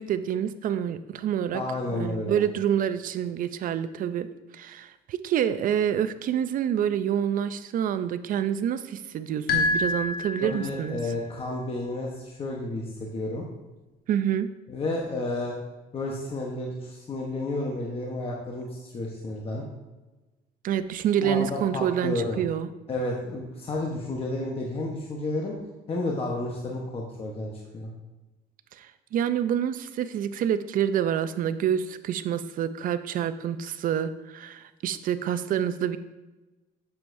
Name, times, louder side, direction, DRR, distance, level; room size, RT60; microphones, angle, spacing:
voice 1, 0.0-1.6 1.9-4.3 4.5-11.0 14.1-14.5 20.6-22.7 28.7-36.0, right 9 dB, 55° right, 13 dB, 0.5 m, -27 dB
voice 2, 1.5-2.4 10.4-13.4 14.7-15.6 15.9-19.6 21.2-22.4 22.9-25.6 25.9-27.9, left 2 dB, 35° left, -1 dB, 1.0 m, -31 dB
sound 1, 9.5-11.0, left 3 dB, 65° left, 1.3 m, -27 dB
7.8 x 7.0 x 2.6 m, 1.1 s
cardioid pair, 110°, 17 cm